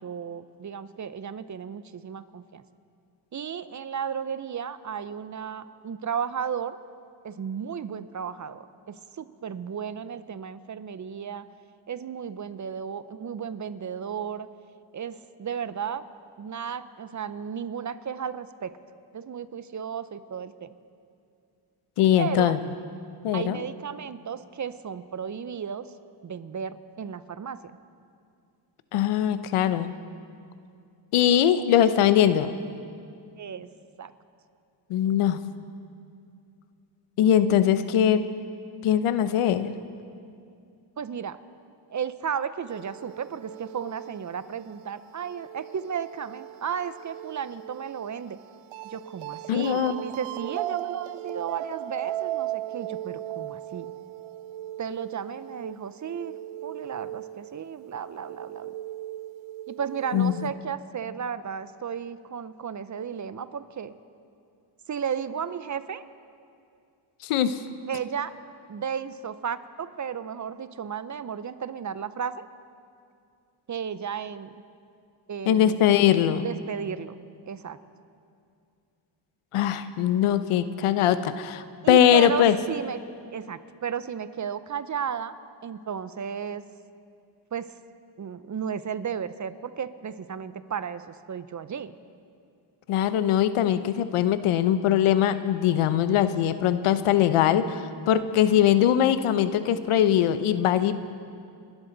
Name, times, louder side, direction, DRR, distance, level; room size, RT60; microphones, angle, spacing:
voice 1, 0.0-2.6 3.3-6.8 7.2-11.5 11.9-14.5 14.9-16.0 16.4-18.7 19.1-20.7 22.2-22.5 23.3-25.9 26.2-27.6 33.4-33.7 34.0-34.1 41.0-41.4 41.9-48.4 48.8-53.9 54.8-56.4 56.6-58.7 59.7-63.9 64.9-66.0 67.9-68.3 68.7-72.4 73.7-74.6 75.3-75.8 76.4-77.2 77.5-77.8 81.8-83.0 83.3-85.4 85.6-86.6 87.5-87.7 88.2-92.0, right 7 dB, 35° right, 14 dB, 0.7 m, -34 dB
voice 2, 22.0-22.6 23.2-23.6 28.9-29.9 31.1-32.5 34.9-35.4 37.2-38.3 38.8-39.7 49.5-49.9 60.1-60.3 67.2-67.6 75.5-76.5 79.5-82.6 92.9-101.0, left 10 dB, 85° left, 12 dB, 0.8 m, -21 dB
sound 1, 42.7-60.5, right 14 dB, 75° right, 0.7 m, -38 dB
29.5 x 12.0 x 4.0 m, 2.4 s
cardioid pair, 85°, 49 cm